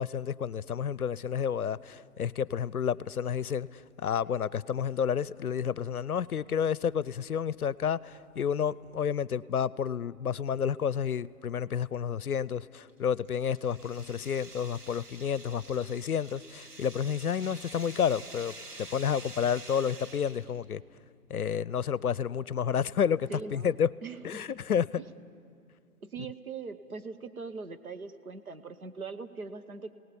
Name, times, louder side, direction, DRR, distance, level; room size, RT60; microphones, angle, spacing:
voice 1, 0.0-20.8 21.3-23.9 24.2-25.0, left 8 dB, 75° left, 0.6 m, -30 dB
sound 1, 12.9-20.6, right 2 dB, 85° right, 2.1 m, -48 dB
voice 2, 23.3-23.7 24.0-24.6 25.0-25.1 26.0-29.9, right 4 dB, 65° right, 1.4 m, -41 dB
29.5 x 18.5 x 7.0 m
figure-of-eight pair, 160°, 45 cm